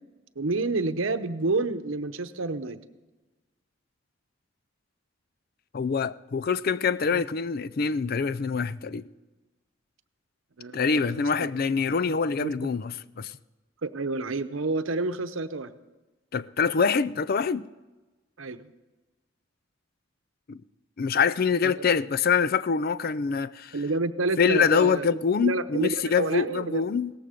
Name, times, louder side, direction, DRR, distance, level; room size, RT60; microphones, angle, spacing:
voice 1, 0.4-2.8 7.1-7.2 10.6-11.5 12.4-12.7 13.8-15.7 18.4-18.6 21.6-21.7 23.7-27.0, right 3 dB, 90° right, 0.9 m, -29 dB
voice 2, 5.7-9.1 10.7-13.3 16.3-17.7 20.5-20.6 21.0-23.8 24.4-27.1, left 6 dB, 50° left, 0.4 m, -25 dB
17.5 x 14.0 x 5.1 m
head